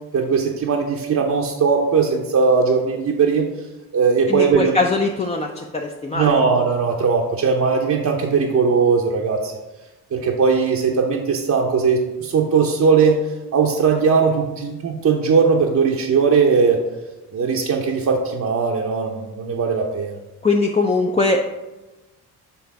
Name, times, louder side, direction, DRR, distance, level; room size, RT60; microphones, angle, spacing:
voice 1, 0.1-3.5 3.9-4.8 6.1-9.5 10.1-13.2 13.5-16.8 17.3-20.2, right 5 dB, 40° right, 0 dB, 0.8 m, -19 dB
voice 2, 4.3-6.4 20.4-21.4, left 3 dB, 15° left, 1 dB, 0.6 m, -21 dB
7.0 x 3.3 x 4.7 m, 1.1 s
hypercardioid pair, 45°, 45 cm